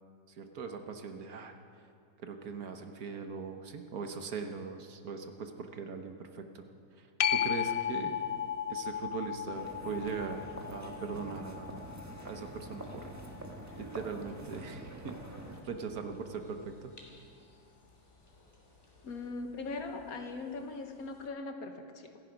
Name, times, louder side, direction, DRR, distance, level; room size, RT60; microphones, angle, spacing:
voice 1, 0.3-1.5 2.2-6.6 7.0-8.2 8.7-11.9 12.2-13.1 13.8-15.2 15.6-16.9, right 5 dB, 60° right, 6 dB, 1.4 m, -40 dB
sound 1, 7.2-14.4 19.9-20.0, left 9 dB, 75° left, 0.5 m, -36 dB
sound 2, 9.5-15.6, right 1 dB, 10° right, 1.3 m, -46 dB
sound 3, 11.7-19.3, equal, 15° left, 2.5 m, -63 dB
voice 2, 19.0-22.2, left 3 dB, 60° left, 5 dB, 1.5 m, -40 dB
26.5 x 10.5 x 5.2 m, 2.4 s
omnidirectional pair, 1.8 m